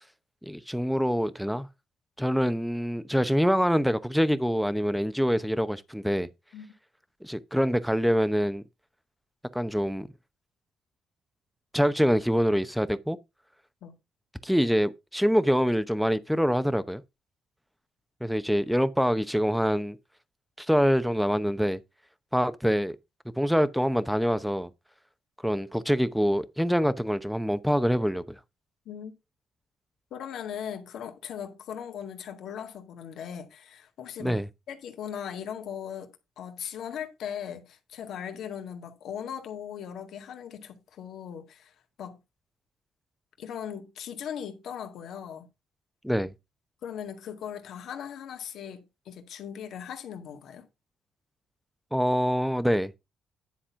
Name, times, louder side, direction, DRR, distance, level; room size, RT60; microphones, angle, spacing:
voice 1, 0.4-1.7 2.2-6.3 7.2-8.6 9.5-10.1 11.7-13.2 14.4-17.0 18.2-20.0 20.6-21.8 22.3-23.0 23.4-24.7 25.4-28.2 34.2-34.5 46.0-46.3 51.9-53.0, equal, ahead, 0.8 m, -25 dB
voice 2, 30.1-34.4 34.7-42.2 43.4-45.5 46.8-50.7, left 8 dB, 75° left, 1.8 m, -39 dB
10.5 x 4.2 x 5.7 m
cardioid pair, 90°, 0 cm